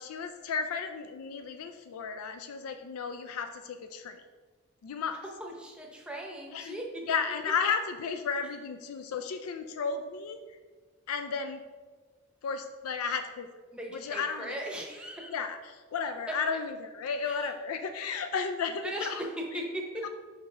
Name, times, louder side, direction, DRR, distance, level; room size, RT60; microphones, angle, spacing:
voice 1, 0.0-4.2 4.8-5.2 6.5-6.8 7.1-10.6 11.1-11.6 12.4-13.5 13.9-14.6 15.3-19.2 20.0-20.1, left 5 dB, 85° left, 8 dB, 0.4 m, -33 dB
voice 2, 5.2-6.9 13.7-15.3 17.2-17.5 18.8-19.3 19.5-20.1, right 1 dB, 5° right, 0 dB, 0.8 m, -38 dB
6.0 x 5.7 x 3.3 m, 1.4 s
head